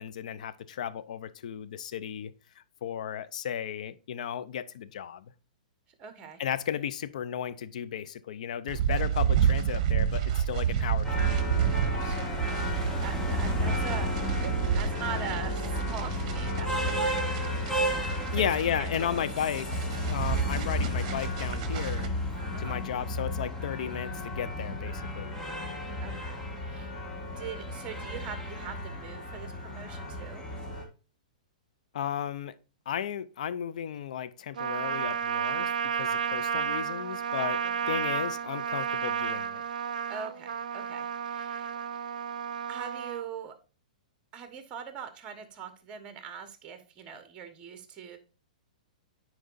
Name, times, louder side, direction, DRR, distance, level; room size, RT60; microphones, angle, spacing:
voice 1, 0.0-5.3 6.4-11.5 18.3-22.1 22.6-25.4 31.9-32.6 32.9-39.6, left 9 dB, 65° left, 0.6 m, -34 dB
voice 2, 6.0-6.4 12.0-12.6 13.0-14.1 14.7-17.7 18.3-18.5 18.8-19.2 22.5-22.8 26.0-26.9 27.4-30.4 37.6-38.0 40.1-41.7 42.7-43.5 44.3-48.2, right 7 dB, 30° right, 1.3 m, -42 dB
sound 1, 8.7-22.1, right 9 dB, 50° right, 1.1 m, -30 dB
sound 2, 11.0-30.8, left 1 dB, 15° left, 1.6 m, -32 dB
Trumpet, 34.6-43.2, right 8 dB, 75° right, 0.5 m, -32 dB
9.5 x 4.6 x 2.6 m
hypercardioid pair, 125°, 4 cm